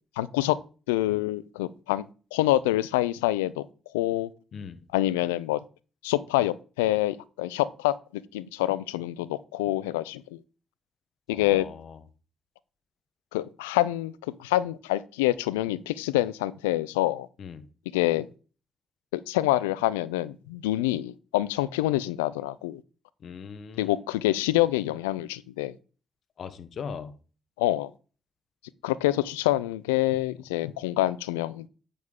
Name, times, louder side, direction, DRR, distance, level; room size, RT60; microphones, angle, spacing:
voice 1, 0.2-0.6 0.9-2.0 2.3-3.7 3.9-4.3 4.9-5.6 6.0-10.4 11.3-11.7 13.3-14.1 14.4-17.3 17.9-18.3 19.1-22.8 23.8-25.7 27.6-27.9 28.8-31.7, left 15 dB, 85° left, 0.3 m, -26 dB
voice 2, 11.3-12.0 17.4-17.7 23.2-23.9 26.4-27.1, left 6 dB, 60° left, 1.0 m, -39 dB
8.1 x 6.8 x 3.6 m
hypercardioid pair, 45°, 0 cm